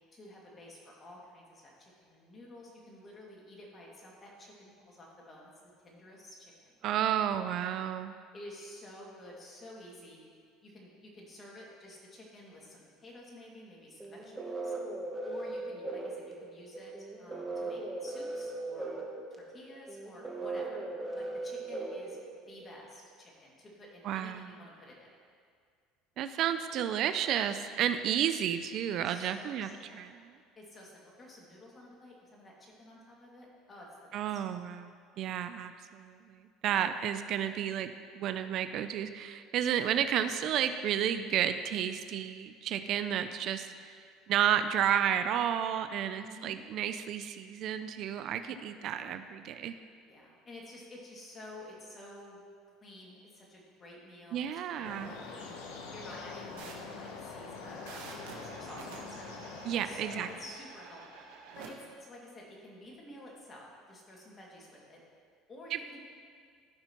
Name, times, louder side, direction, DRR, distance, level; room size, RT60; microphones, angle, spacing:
voice 1, 0.1-7.0 8.3-10.2 10.6-14.7 15.2-18.9 19.3-20.8 21.1-25.1 29.0-30.0 30.6-34.4 43.7-43.8 46.1-46.6 48.5-48.6 50.1-52.4 52.8-55.6 55.9-59.3 59.8-61.2 61.6-65.0 65.5-66.0, left 1 dB, 30° left, -3 dB, 2.2 m, -51 dB
voice 2, 6.8-8.1 24.0-24.5 26.2-30.1 34.1-44.0 44.3-49.8 54.3-55.1 59.7-60.3, right 9 dB, 55° right, 10 dB, 0.4 m, -32 dB
sound 1, 14.0-22.7, right 2 dB, 10° right, 1.1 m, -38 dB
sound 2, 54.8-60.4, left 4 dB, 80° left, 0.9 m, -44 dB
sound 3, 56.6-61.7, right 5 dB, 85° right, 1.2 m, -50 dB
14.0 x 5.7 x 3.0 m, 2.1 s
supercardioid pair, 105°, 0 cm